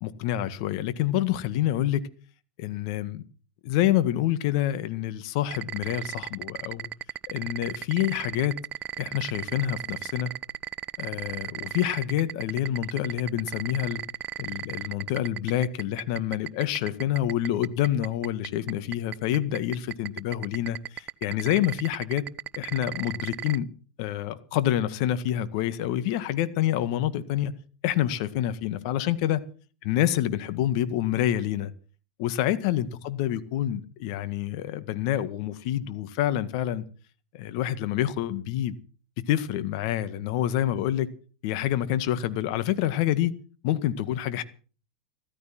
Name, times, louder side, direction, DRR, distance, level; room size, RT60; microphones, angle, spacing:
voice 1, 0.0-2.1 2.6-3.2 3.6-6.9 7.3-8.6 9.0-10.3 11.0-14.0 14.4-22.3 22.6-23.7 24.0-27.5 27.8-29.4 29.8-31.7 32.2-36.8 37.3-38.8 39.3-41.1 41.4-43.3 43.6-44.4, left 12 dB, 60° left, 1.8 m, -27 dB
sound 1, 5.5-23.6, right 11 dB, 35° right, 0.8 m, -34 dB
15.0 x 14.0 x 6.1 m
hypercardioid pair, 105°, 4 cm